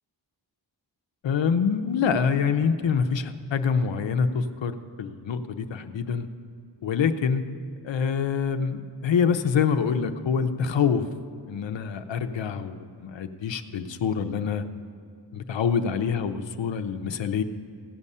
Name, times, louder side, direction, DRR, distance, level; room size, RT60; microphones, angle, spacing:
voice 1, 1.2-6.3 6.8-7.4 7.8-11.1 11.5-14.6 15.3-17.4, left 6 dB, 85° left, 8 dB, 0.7 m, -26 dB
16.0 x 5.5 x 8.5 m, 2.4 s
wide cardioid pair, 145°, 43 cm